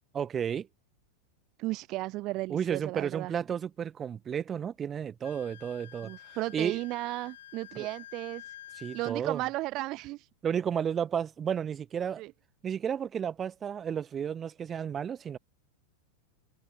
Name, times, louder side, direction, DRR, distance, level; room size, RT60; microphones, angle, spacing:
voice 1, 0.1-0.7 2.5-6.1 6.5-6.8 7.8-7.9 8.8-9.4 10.4-12.2 12.6-15.4, right 8 dB, 25° right, 1.5 m, -32 dB
voice 2, 1.6-3.3 6.0-8.6 8.9-10.3 12.2-12.3, right 19 dB, 40° right, 0.5 m, -35 dB
Wind instrument woodwind instrument, 5.2-9.2, left 12 dB, 60° left, 0.8 m, -49 dB
figure-of-eight pair, 90°, 0 cm